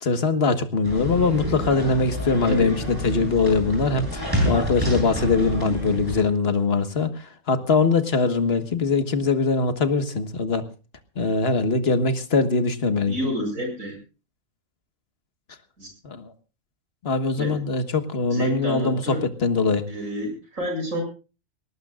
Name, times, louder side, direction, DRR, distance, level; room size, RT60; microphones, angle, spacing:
voice 1, 0.0-10.7 11.2-13.2 16.0-16.3 17.0-19.1 19.4-19.9, left 4 dB, 45° left, 9 dB, 1.7 m, -22 dB
sound 1, 0.8-6.2, equal, 15° right, 7.6 m, -28 dB
voice 2, 13.0-14.0 15.8-15.9 17.4-17.6 18.3-19.2 19.9-21.0, equal, 65° right, 4 dB, 8.0 m, -29 dB
22.0 x 18.5 x 2.4 m, 0.33 s
omnidirectional pair, 1.5 m